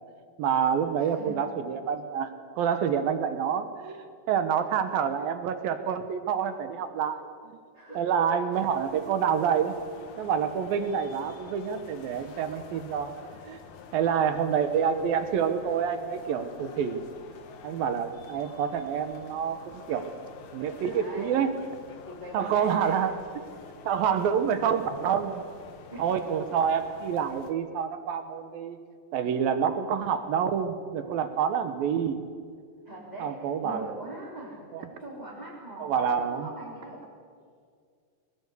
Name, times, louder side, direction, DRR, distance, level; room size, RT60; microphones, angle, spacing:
voice 1, 0.4-7.3 8.0-9.7 10.2-13.2 13.5-13.6 13.9-17.0 17.6-20.1 20.5-21.5 22.3-23.4 23.9-25.5 26.0-28.8 29.1-32.2 33.2-33.9 34.7-34.8 35.8-36.5, right 7 dB, 70° right, 9 dB, 2.6 m, -27 dB
voice 2, 0.9-1.4 7.7-8.4 20.9-21.4 22.0-23.0 25.9-26.1 32.8-37.0, right 1 dB, 10° right, -7 dB, 3.3 m, -42 dB
sound 1, 8.5-27.5, left 6 dB, 55° left, 2.5 m, -48 dB
21.5 x 19.0 x 8.2 m, 2.1 s
omnidirectional pair, 4.8 m